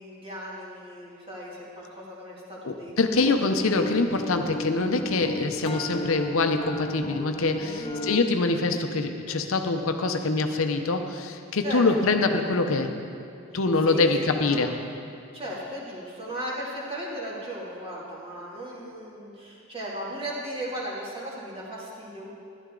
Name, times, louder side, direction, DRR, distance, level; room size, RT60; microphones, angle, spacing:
voice 1, 0.0-2.9 7.8-8.1 11.6-12.1 13.8-14.7 15.3-22.3, right 1 dB, 25° right, -6 dB, 2.3 m, -36 dB
voice 2, 2.6-12.9 13.5-14.7, left 3 dB, 70° left, 6 dB, 0.7 m, -24 dB
sound 1, 3.2-8.2, left 1 dB, 30° left, 0.4 m, -34 dB
12.5 x 11.0 x 3.8 m, 2.4 s
head